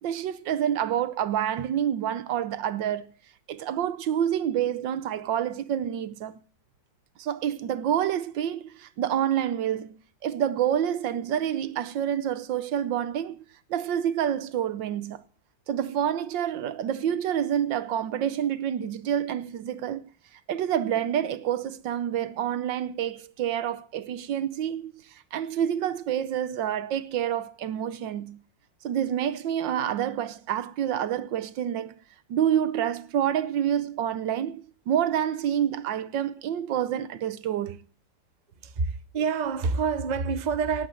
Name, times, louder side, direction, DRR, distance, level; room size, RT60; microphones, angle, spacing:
voice 1, 0.0-3.1 3.5-6.4 7.2-13.4 13.7-15.2 15.7-20.0 20.5-28.4 28.8-31.9 32.3-37.8, right 10 dB, 80° right, 1.6 m, -28 dB
voice 2, 38.6-40.9, right 5 dB, 35° right, 0.8 m, -27 dB
18.5 x 8.1 x 7.6 m
omnidirectional pair, 2.0 m